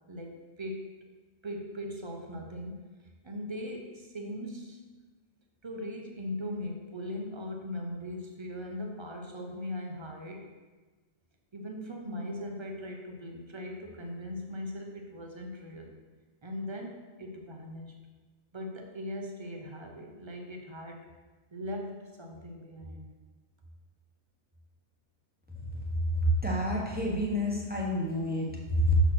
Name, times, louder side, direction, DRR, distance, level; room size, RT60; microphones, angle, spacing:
voice 1, 0.1-0.9 1.4-2.8 3.2-4.8 5.6-10.5 11.5-15.9 16.4-17.9 18.5-21.1 21.5-23.1, left 1 dB, 30° right, 2 dB, 0.6 m, -39 dB
voice 2, 26.1-29.0, equal, 10° right, -4 dB, 1.0 m, -28 dB
6.2 x 4.0 x 6.1 m, 1.3 s
omnidirectional pair, 1.4 m